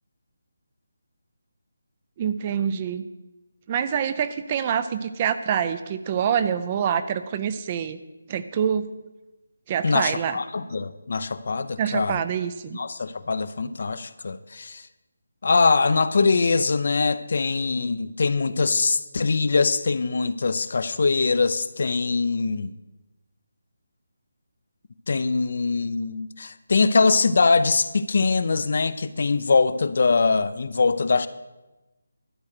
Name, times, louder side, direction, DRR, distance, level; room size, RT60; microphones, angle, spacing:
voice 1, 2.2-3.1 3.7-8.0 8.3-8.9 9.7-10.4 11.8-12.8, right 8 dB, 20° right, 12 dB, 0.4 m, -26 dB
voice 2, 9.8-12.2 12.7-14.8 15.4-22.7 25.1-31.3, left 4 dB, 50° left, 14 dB, 0.6 m, -22 dB
12.0 x 7.7 x 6.6 m, 1.0 s
figure-of-eight pair, 170°, 0 cm